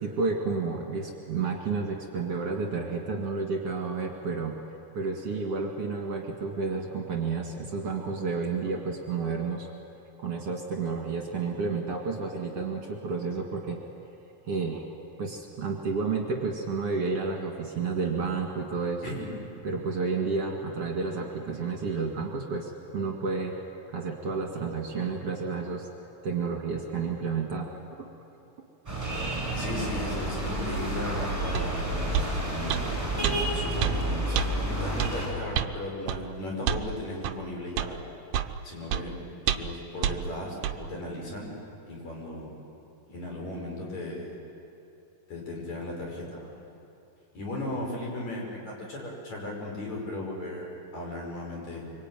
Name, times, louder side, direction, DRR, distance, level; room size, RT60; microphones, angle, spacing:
voice 1, 0.0-4.6 4.9-9.7 10.2-13.8 14.4-14.9 15.2-19.1 19.6-23.6 23.9-25.9 26.2-27.7, right 4 dB, 50° right, 0 dB, 3.0 m, -31 dB
sound 1, 28.9-35.3, right 1 dB, 10° right, 6.5 m, -30 dB
voice 2, 29.5-32.2 32.5-32.9 33.2-38.1 38.6-39.2 39.5-41.5 41.9-42.5 43.1-44.4 45.3-46.6 47.4-51.9, left 1 dB, 55° left, -1 dB, 7.0 m, -36 dB
sound 2, 31.5-31.7 32.1-32.3 32.7-32.9 33.2-33.4 33.8-34.0 34.3-34.5 35.0-35.1 35.5-35.7 36.1-36.2 36.7-36.9 37.2-37.4 37.8-37.9 38.3-38.5 38.9-39.0 39.5-39.7 40.0-40.2 40.6-40.8, right 10 dB, 70° right, 2.1 m, -27 dB
25.5 x 25.0 x 9.2 m, 2.8 s
omnidirectional pair, 4.0 m